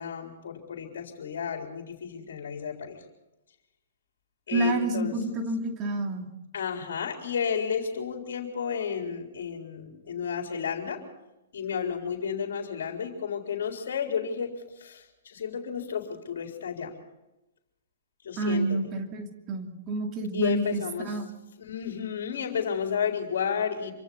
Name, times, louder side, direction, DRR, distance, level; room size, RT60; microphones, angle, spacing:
voice 1, 0.0-3.0 4.5-5.1 6.5-11.0 11.5-14.5 14.8-16.9 18.2-18.9 20.3-21.2 21.6-23.9, left 7 dB, 65° left, 2 dB, 4.0 m, -32 dB
voice 2, 4.5-6.3 18.4-21.2, right 2 dB, 30° right, 3 dB, 2.7 m, -29 dB
26.5 x 25.0 x 4.1 m, 0.96 s
hypercardioid pair, 120°, 0 cm